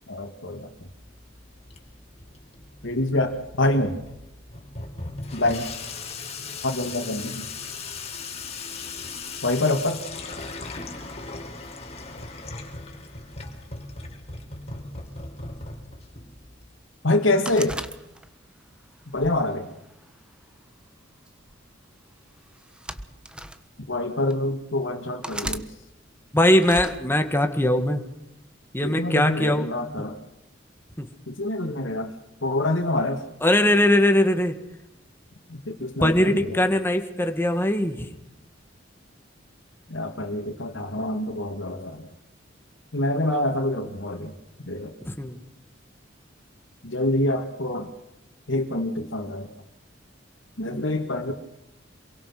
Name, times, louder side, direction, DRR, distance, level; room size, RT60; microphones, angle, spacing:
voice 1, 0.1-0.7 2.8-4.0 5.3-5.7 6.6-7.5 9.4-10.0 17.0-17.8 19.1-19.7 23.9-25.7 28.8-30.2 31.3-32.1 32.4-33.2 35.5-36.6 39.9-42.1 42.9-44.3 44.6-44.9 46.8-47.9 48.5-49.5 50.6-51.3, left 1 dB, 80° left, 0 dB, 2.6 m, -26 dB
Water tap faucet / Sink (filling or washing), 0.7-16.7, left 3 dB, 35° left, 4.6 m, -38 dB
sound 1, 17.5-18.5 19.1-20.3 21.3-21.5 22.5-23.6 24.3-24.4 25.2-25.7 26.6-27.0, right 1 dB, 5° right, 1.3 m, -35 dB
voice 2, 26.3-28.0 28.7-29.7 31.0-31.1 33.4-34.6 36.0-38.1 45.0-45.4, left 1 dB, 10° left, 6 dB, 2.1 m, -21 dB
27.5 x 23.5 x 6.1 m, 0.88 s
head